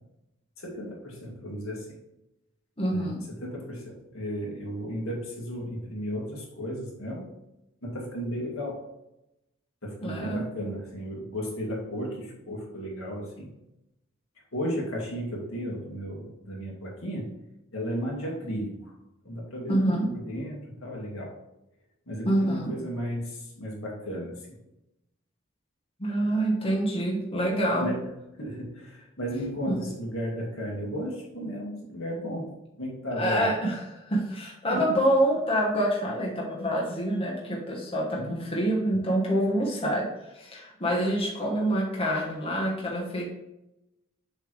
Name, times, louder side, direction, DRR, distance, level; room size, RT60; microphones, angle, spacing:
voice 1, 0.6-2.0 2.9-7.3 7.8-8.8 9.8-13.5 14.5-17.3 17.7-18.9 19.2-21.3 22.1-24.6 27.8-28.1 28.4-32.5 32.8-33.5 34.7-34.9 38.2-38.6, equal, 75° left, -2 dB, 2.0 m, -34 dB
voice 2, 2.8-3.2 10.0-10.5 19.7-20.1 22.2-22.7 26.0-27.9 29.7-29.8 33.2-33.8 34.1-40.1 40.3-43.2, right 1 dB, 30° left, -4 dB, 1.3 m, -26 dB
7.0 x 3.5 x 4.6 m, 0.90 s
head